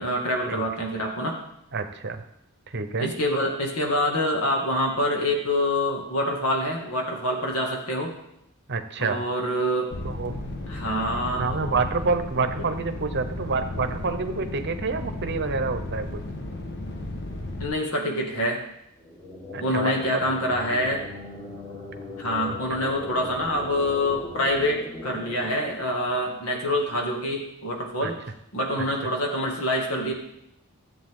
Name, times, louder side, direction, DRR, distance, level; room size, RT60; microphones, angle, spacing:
voice 1, 0.0-1.4 3.0-8.1 9.0-9.9 10.7-11.4 17.6-18.6 19.6-21.0 22.2-28.2 28.5-30.1, left 1 dB, 70° left, 0 dB, 2.2 m, -26 dB
voice 2, 1.7-2.2 2.7-3.1 8.7-9.2 10.0-10.3 11.4-16.2 19.5-20.2 28.0-28.1, right 4 dB, 50° right, 8 dB, 0.9 m, -28 dB
sound 1, 9.9-17.7, left 1 dB, 50° left, 1.1 m, -34 dB
sound 2, 19.0-26.6, left 1 dB, 25° left, 1.8 m, -39 dB
13.0 x 8.1 x 3.7 m, 0.80 s
head